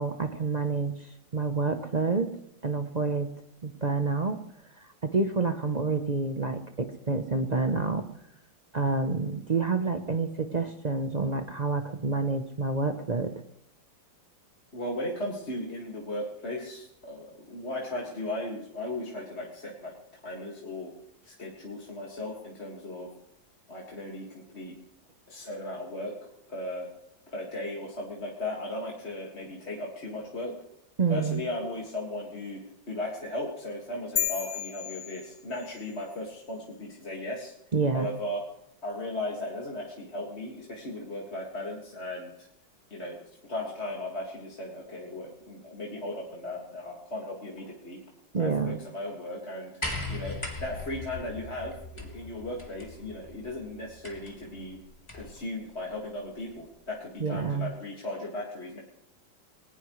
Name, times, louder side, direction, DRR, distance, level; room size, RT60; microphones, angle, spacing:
voice 1, 0.0-2.3 2.6-3.3 3.6-4.4 4.8-8.1 8.7-13.3 31.0-31.4 37.7-38.1 48.3-48.8 57.2-57.7, right 4 dB, 65° right, 7 dB, 0.4 m, -28 dB
voice 2, 14.7-19.9 20.2-20.9 21.3-23.1 23.7-24.8 25.3-26.1 26.5-26.9 27.3-30.5 31.1-37.5 37.9-38.4 38.8-42.3 42.9-43.2 43.4-48.0 48.4-49.7 50.1-54.8 55.1-58.8, left 1 dB, 35° left, -3 dB, 2.3 m, -36 dB
sound 1, 34.2-35.9, left 9 dB, 60° left, 1.8 m, -33 dB
sound 2, 49.8-55.4 56.5-56.6, left 2 dB, 15° left, 2.8 m, -39 dB
20.5 x 19.5 x 3.2 m, 0.80 s
omnidirectional pair, 2.1 m